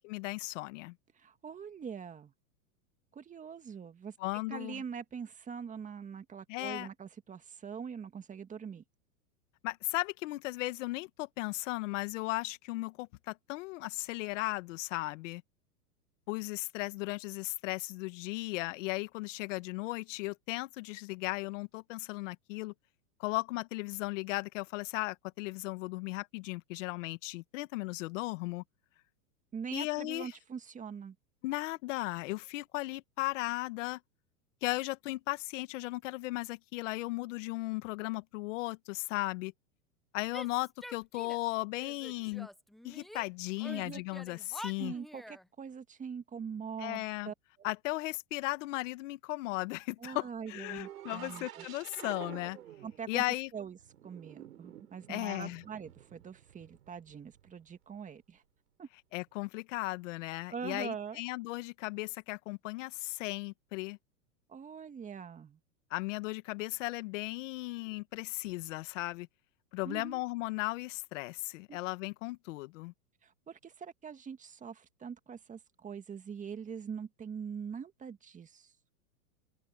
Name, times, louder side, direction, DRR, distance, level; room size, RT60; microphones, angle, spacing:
voice 1, 0.0-0.9 4.2-4.8 6.5-6.9 9.6-15.4 16.3-22.7 23.2-28.6 29.7-30.3 31.4-34.0 34.6-39.5 40.1-42.5 42.8-44.9 46.8-47.3 47.6-52.6 53.1-53.5 55.1-55.6 59.1-64.0 65.9-69.3 69.7-72.9, left 21 dB, 55° left, 1.6 m, -36 dB
voice 2, 1.2-2.3 3.1-4.2 4.5-8.8 29.5-31.2 43.6-44.0 44.8-47.3 50.0-51.7 52.8-53.2 53.5-53.8 54.0-58.4 58.8-58.9 60.5-61.2 64.5-65.6 69.8-70.2 71.7-71.8 73.2-78.7, right 7 dB, 15° right, 1.9 m, -43 dB
Female speech woman speaking / Yell, 40.3-41.5 41.8-43.3 43.6-45.4, equal, ahead, 0.4 m, -47 dB
sound 1, 50.8-53.3 53.6-57.6 59.3-59.4, right 12 dB, 80° right, 5.2 m, -50 dB
open air
hypercardioid pair, 130°, 45 cm